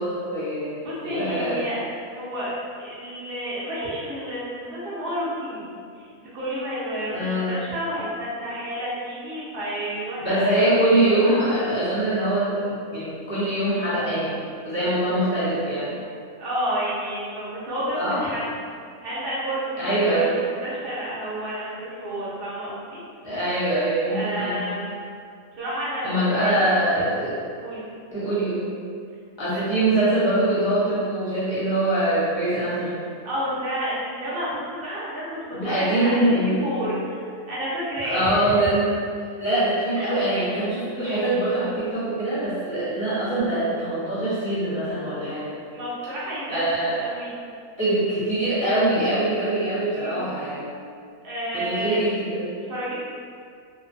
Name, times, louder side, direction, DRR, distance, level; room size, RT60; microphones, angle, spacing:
voice 1, 0.0-1.7 7.1-7.6 10.2-14.4 14.6-16.0 17.9-18.2 19.8-20.3 23.2-24.6 26.0-27.4 28.1-28.6 29.4-33.0 35.5-36.7 38.0-38.9 39.4-45.5 46.5-46.9 47.8-50.7 51.5-52.5, right 1 dB, 25° left, -12 dB, 0.6 m, -23 dB
voice 2, 0.8-1.8 2.1-2.5 2.8-5.7 6.0-6.1 6.3-11.4 16.4-18.4 18.7-19.9 20.2-23.0 24.1-24.9 25.5-26.8 27.6-27.8 29.5-29.6 33.2-38.6 40.0-40.1 45.7-47.3 49.9-50.2 51.2-52.0 52.7-53.0, equal, 50° right, -8 dB, 0.7 m, -30 dB
2.5 x 2.3 x 2.5 m, 2.3 s
omnidirectional pair, 1.6 m